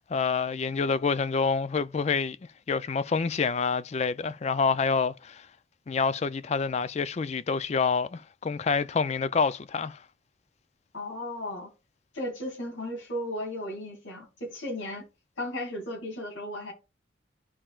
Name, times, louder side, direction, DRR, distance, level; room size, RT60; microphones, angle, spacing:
voice 1, 0.0-2.4 2.7-5.5 5.9-10.0, left 5 dB, 35° left, 0.3 m, -27 dB
voice 2, 10.9-11.7 12.1-15.0 15.4-16.7, left 1 dB, 85° left, 2.5 m, -35 dB
12.0 x 4.4 x 2.4 m
head